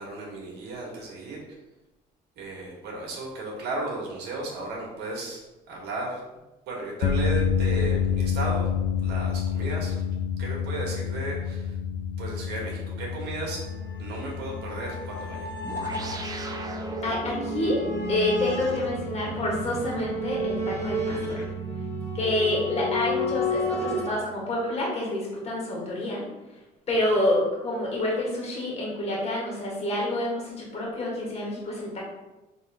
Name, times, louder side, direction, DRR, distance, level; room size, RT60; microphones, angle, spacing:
voice 1, 0.0-1.4 2.4-6.2 6.7-8.7 9.0-10.0 10.4-11.8 12.2-13.7 14.0-15.5 26.9-27.0, right 2 dB, 80° right, -2 dB, 1.5 m, -35 dB
sound 1, 7.0-21.3, left 7 dB, 75° left, 0.5 m, -30 dB
sound 2, 13.4-24.1, left 2 dB, 15° left, 1.5 m, -33 dB
sound 3, 15.6-24.5, right 6 dB, 20° right, 0.5 m, -36 dB
voice 2, 17.0-17.8 18.1-21.4 22.1-26.2 26.9-32.0, left 1 dB, 40° left, -3 dB, 1.4 m, -28 dB
4.3 x 3.1 x 3.4 m, 1.0 s
cardioid pair, 110°, 17 cm